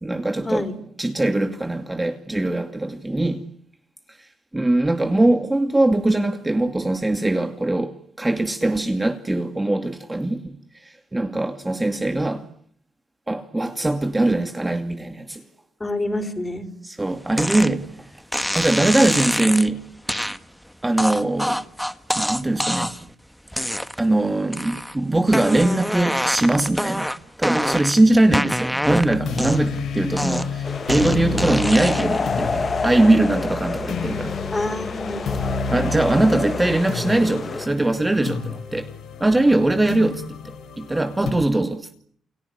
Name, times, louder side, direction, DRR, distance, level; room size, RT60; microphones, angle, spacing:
voice 1, 0.0-0.7 1.0-3.4 4.1-12.5 13.3-15.4 16.8-18.1 18.5-19.8 20.1-20.2 20.8-21.6 22.1-23.0 24.0-27.1 27.4-34.4 35.7-38.9 39.2-41.9, right 2 dB, 15° right, 2.5 m, -21 dB
voice 2, 15.8-16.7 34.5-35.4, left 2 dB, 15° left, 5.2 m, -27 dB
sound 1, 17.4-17.7 18.3-19.7 20.1-20.4 21.0-23.1 23.5-24.1 24.5-25.0 25.3-28.0 28.3-29.8 30.2-32.2, equal, ahead, 1.4 m, -25 dB
sound 2, 28.9-41.3, left 4 dB, 70° left, 6.3 m, -30 dB
sound 3, 30.6-37.7, left 4 dB, 35° left, 1.2 m, -29 dB
29.5 x 20.5 x 9.8 m
cardioid pair, 90°, 0 cm